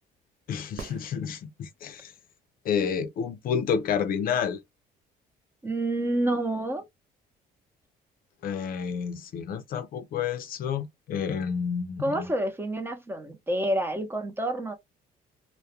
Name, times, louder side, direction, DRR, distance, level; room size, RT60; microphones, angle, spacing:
voice 1, 0.5-2.1 2.6-4.6 8.4-12.3, left 7 dB, 60° left, 0.5 m, -30 dB
sound 1, 0.7-1.9 5.8-5.9, right 5 dB, 50° right, 0.5 m, -43 dB
voice 2, 5.6-6.8 12.0-14.7, right 1 dB, 15° right, 0.7 m, -28 dB
2.3 x 2.1 x 2.7 m
cardioid pair, 110°, 17 cm